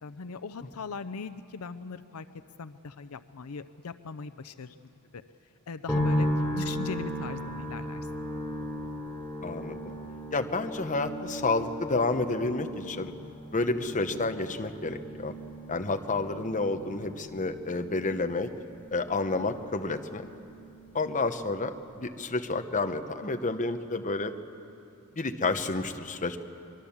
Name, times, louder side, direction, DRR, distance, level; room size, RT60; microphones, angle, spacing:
voice 1, 0.0-2.3 2.6-4.8 5.1-5.2 5.7-6.3 6.5-8.1, left 4 dB, 75° left, 12 dB, 0.6 m, -39 dB
sound 1, 5.9-21.1 21.4-22.3, equal, 10° left, 3.0 m, -36 dB
voice 2, 9.4-9.9 10.3-13.1 13.5-15.3 15.7-18.5 18.9-20.3 20.9-24.3 25.2-26.4, left 3 dB, 35° left, 7 dB, 1.0 m, -30 dB
24.0 x 22.5 x 7.3 m, 2.7 s
head